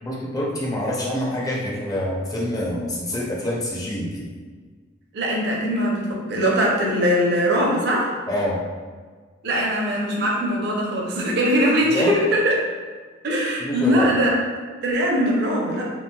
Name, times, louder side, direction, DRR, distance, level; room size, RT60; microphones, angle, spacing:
voice 1, 0.0-4.2 8.3-8.6 11.9-12.2 13.6-14.1, left 1 dB, 20° left, -4 dB, 0.5 m, -26 dB
voice 2, 5.1-8.1 9.4-12.5 13.2-14.4 14.8-15.9, equal, 55° right, -2 dB, 0.6 m, -21 dB
3.0 x 2.9 x 2.2 m, 1.5 s
head